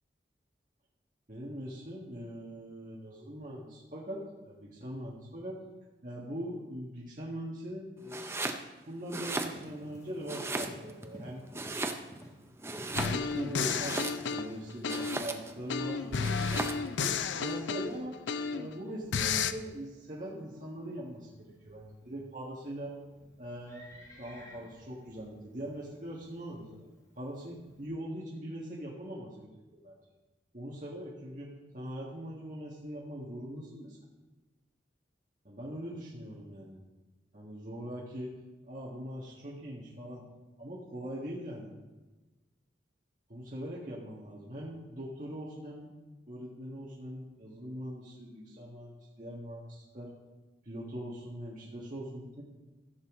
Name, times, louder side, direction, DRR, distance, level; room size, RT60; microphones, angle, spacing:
voice 1, 1.3-5.6 6.0-8.3 8.8-11.4 12.9-14.0 14.2-16.7 17.0-18.1 18.5-23.0 23.4-23.8 24.2-26.8 27.1-30.0 30.5-34.0 35.4-36.8 37.3-38.3 38.7-40.2 40.6-41.7 43.3-45.9 46.3-50.1 50.6-52.4, equal, 45° right, -5 dB, 1.7 m, -41 dB
Domestic sounds home sounds, 8.1-8.6 9.0-9.9 10.3-11.1 11.5-12.3 12.6-14.4 14.9-15.6 16.2-16.9, right 2 dB, 15° right, 0.5 m, -36 dB
Livestock farm animals working animals, 9.4-27.9, equal, 15° left, 1.3 m, -56 dB
sound 1, 13.0-15.3 15.7-18.7 19.1-19.5, left 6 dB, 85° left, 0.5 m, -32 dB
14.5 x 6.8 x 3.8 m, 1.2 s
head